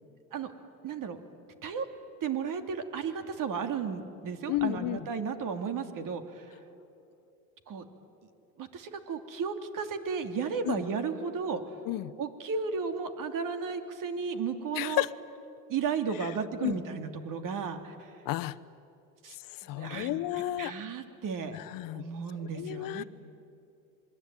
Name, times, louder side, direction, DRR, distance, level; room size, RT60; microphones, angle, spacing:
voice 1, 0.8-1.2 1.6-1.8 2.2-6.5 7.7-7.9 8.6-11.6 12.2-15.0 15.7-18.1 19.2-19.4 19.6-20.2 20.6-21.6 21.9-23.0, right 6 dB, 50° right, 8 dB, 2.7 m, -34 dB
voice 2, 4.5-5.0 10.6-10.8 11.9-12.1 14.7-15.1 16.2-16.3 16.6-16.8 18.2-18.6 19.5-20.7 21.5-22.1 22.4-23.0, left 16 dB, 50° left, 15 dB, 0.9 m, -32 dB
27.0 x 21.5 x 9.2 m, 2.7 s
hypercardioid pair, 85°, 43 cm